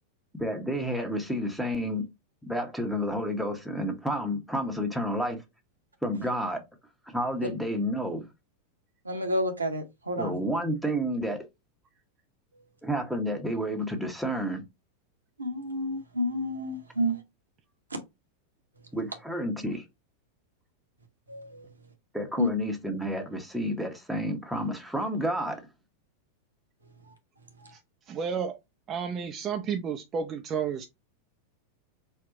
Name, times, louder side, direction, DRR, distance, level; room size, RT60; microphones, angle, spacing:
voice 1, 0.3-2.1 2.4-5.4 6.0-6.6 7.1-8.3 10.2-11.5 12.8-14.6 18.9-19.8 22.1-25.6, equal, ahead, 1.0 m, -30 dB
voice 2, 9.1-10.4 15.4-17.1 21.3-21.5 22.4-22.5, equal, 80° right, 1.0 m, -29 dB
voice 3, 28.1-28.6 28.9-30.8, right 6 dB, 30° right, 0.5 m, -31 dB
4.4 x 2.3 x 3.8 m
figure-of-eight pair, 90°, 0 cm